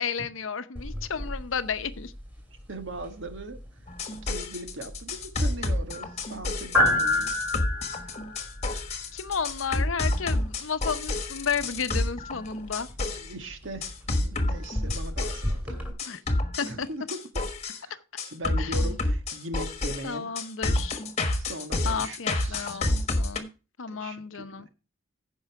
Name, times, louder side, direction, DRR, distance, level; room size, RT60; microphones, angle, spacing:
voice 1, 0.0-2.1 7.7-8.4 9.1-12.9 16.0-16.2 16.6-16.9 18.6-18.8 20.0-21.0 21.8-23.5 23.8-24.7, left 6 dB, 75° left, 0.8 m, -32 dB
sound 1, 0.8-15.9, left 1 dB, 10° right, 2.5 m, -33 dB
voice 2, 2.7-3.6 4.2-7.6 13.0-15.8 16.7-17.2 17.7-20.3 21.3-22.8 23.9-24.7, right 1 dB, 65° right, 1.6 m, -40 dB
sound 2, 3.9-13.3 13.8-15.5 16.0-17.8 18.2-23.4, left 2 dB, 35° left, 1.3 m, -29 dB
15.0 x 5.4 x 4.7 m
head